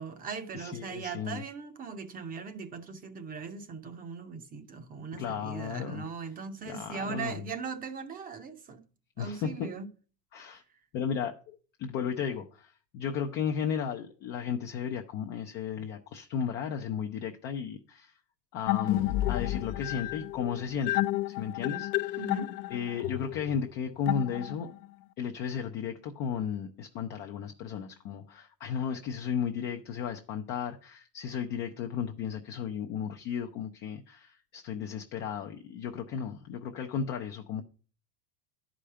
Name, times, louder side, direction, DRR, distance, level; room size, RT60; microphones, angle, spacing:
voice 1, 0.0-8.9 9.2-9.9 22.2-22.5, right 5 dB, 20° right, 0.6 m, -39 dB
voice 2, 0.5-1.4 5.1-6.1 6.7-7.4 9.2-9.7 10.3-10.6 10.9-18.2 18.5-22.2 22.7-24.7 25.2-37.6, left 7 dB, 25° left, 0.3 m, -34 dB
sound 1, 18.7-24.8, left 16 dB, 70° left, 0.6 m, -31 dB
11.0 x 5.0 x 5.5 m
supercardioid pair, 150°, 50 cm